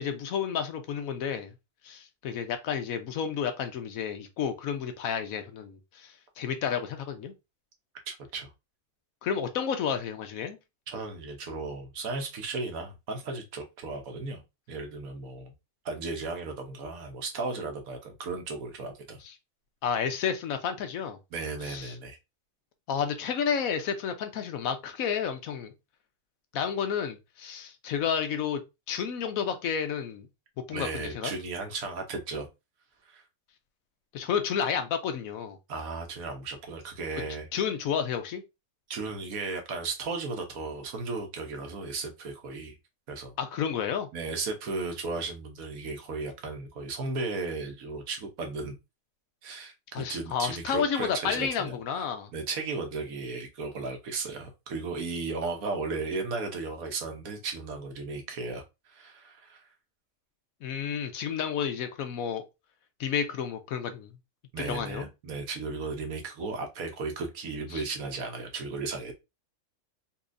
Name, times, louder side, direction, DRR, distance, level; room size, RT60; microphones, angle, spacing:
voice 1, 0.0-1.5 1.8-7.3 9.2-10.6 19.2-19.3 19.8-21.2 21.6-21.9 22.9-25.7 26.5-28.6 28.9-30.3 30.7-31.3 34.1-35.6 37.5-38.4 43.4-44.1 49.9-52.3 60.6-62.4 63.0-64.1 64.7-65.1 67.7-67.8, left 7 dB, 70° left, 1.0 m, -31 dB
voice 2, 8.1-8.5 10.9-14.4 14.7-15.5 15.8-19.2 21.3-22.2 30.7-32.5 33.1-33.2 35.7-37.5 38.9-42.8 43.1-43.3 44.1-48.8 49.4-51.8 52.3-59.6 64.5-69.1, right 3 dB, 65° right, 1.3 m, -35 dB
4.1 x 2.7 x 2.5 m
omnidirectional pair, 1.6 m